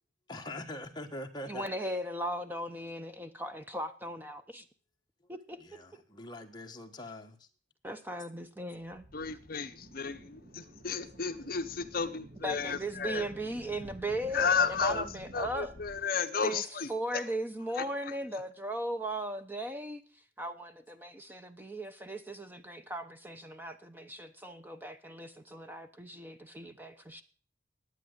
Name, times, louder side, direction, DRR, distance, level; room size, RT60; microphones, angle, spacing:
voice 1, 0.3-1.7 5.6-7.5, left 1 dB, 20° left, 1.4 m, -43 dB
voice 2, 1.5-4.6 5.3-6.0 7.8-9.0 12.4-15.7 16.4-20.0 20.4-27.2, right 1 dB, 10° right, 0.8 m, -38 dB
sound 1, 8.9-16.0, right 1 dB, 50° right, 1.8 m, -51 dB
voice 3, 9.1-13.3 14.3-15.1 15.3-16.9 17.8-17.9, left 5 dB, 50° left, 0.8 m, -32 dB
11.0 x 9.0 x 8.0 m
head